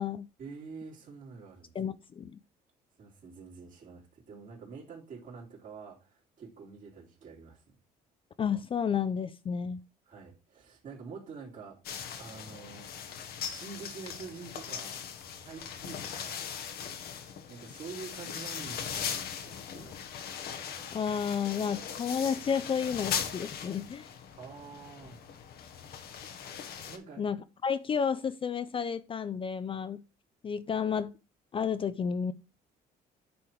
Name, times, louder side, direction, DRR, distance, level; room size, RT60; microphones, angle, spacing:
voice 1, 0.4-1.8 3.0-7.7 10.1-11.8 12.2-12.9 13.4-15.0 15.4-16.5 17.5-20.0 24.4-25.3 26.9-27.2, right 5 dB, 50° right, 3.2 m, -47 dB
voice 2, 1.7-2.4 8.4-9.8 20.9-24.1 27.2-27.4 27.6-30.0 30.4-31.1 31.5-32.3, left 7 dB, 30° left, 0.4 m, -31 dB
sound 1, 11.8-27.0, left 8 dB, 65° left, 1.2 m, -39 dB
10.0 x 3.5 x 4.5 m
cardioid pair, 110°, 17 cm